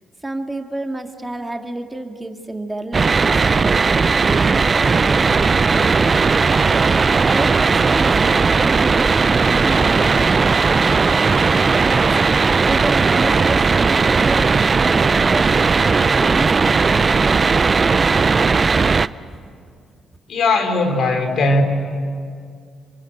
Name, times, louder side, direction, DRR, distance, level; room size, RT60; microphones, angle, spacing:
voice 1, 0.2-6.5 7.2-12.0 12.6-17.9 18.8-19.5 19.9-20.0, right 2 dB, 15° right, 4 dB, 2.3 m, -30 dB
sound 1, 2.9-19.1, right 4 dB, 40° right, 0.6 m, -16 dB
voice 2, 20.3-21.6, left 2 dB, 65° left, 6 dB, 3.4 m, -18 dB
26.0 x 24.5 x 8.9 m, 2.2 s
supercardioid pair, 55°, 0 cm